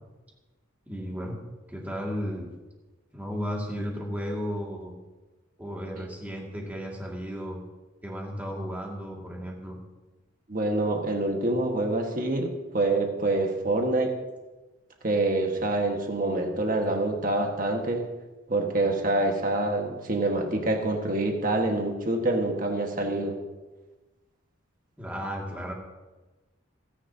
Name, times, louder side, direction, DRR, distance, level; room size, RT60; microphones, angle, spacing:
voice 1, 0.9-1.4 1.7-2.5 3.1-5.0 5.6-7.6 8.0-9.8 25.0-25.7, equal, 10° right, -2 dB, 2.2 m, -34 dB
voice 2, 10.5-14.1 15.0-18.0 18.5-23.4, right 2 dB, 40° right, 2 dB, 1.5 m, -26 dB
29.5 x 10.0 x 2.8 m, 1.2 s
head